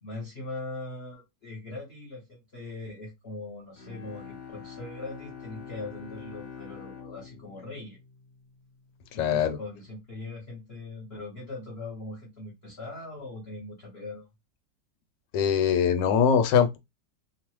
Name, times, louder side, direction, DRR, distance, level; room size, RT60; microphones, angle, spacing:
voice 1, 0.0-8.0 9.1-14.3, left 2 dB, 50° left, 0.8 m, -40 dB
Bowed string instrument, 3.8-8.9, left 7 dB, 65° left, 1.2 m, -45 dB
voice 2, 9.1-9.6 15.3-16.8, left 7 dB, 85° left, 1.2 m, -22 dB
3.1 x 2.0 x 2.9 m
omnidirectional pair, 1.9 m